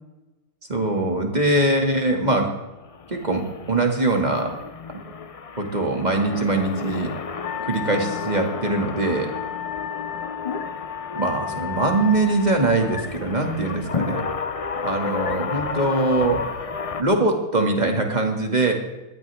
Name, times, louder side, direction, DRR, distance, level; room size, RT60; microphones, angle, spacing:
voice 1, 0.7-2.5 3.1-4.5 4.9-5.0 5.6-7.1 7.6-9.3 11.1-14.2 14.8-16.4 17.0-18.7, right 2 dB, 30° right, 2 dB, 2.4 m, -22 dB
sound 1, 2.8-17.0, left 5 dB, 55° left, 0.3 m, -32 dB
Wind instrument woodwind instrument, 7.4-13.1, left 9 dB, 75° left, 1.1 m, -34 dB
20.5 x 15.0 x 3.6 m, 1.1 s
omnidirectional pair, 1.6 m